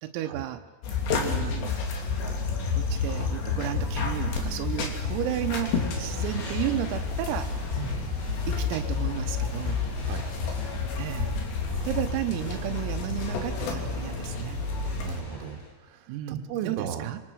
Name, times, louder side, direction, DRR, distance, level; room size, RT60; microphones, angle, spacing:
voice 1, 0.0-0.6 1.1-1.8 2.7-7.5 8.5-9.8 11.0-11.3 11.9-14.6 16.1-17.2, right 14 dB, 90° right, 6 dB, 3.8 m, -33 dB
sound 1, 0.8-15.2, left 4 dB, 60° left, 4.6 m, -30 dB
sound 2, 5.0-15.7, left 1 dB, 80° left, 8.3 m, -43 dB
voice 2, 7.8-8.2 10.1-10.3 11.7-12.1 15.0-17.1, right 7 dB, 70° right, 4 dB, 4.0 m, -36 dB
26.5 x 24.5 x 6.4 m, 1.3 s
omnidirectional pair, 6.0 m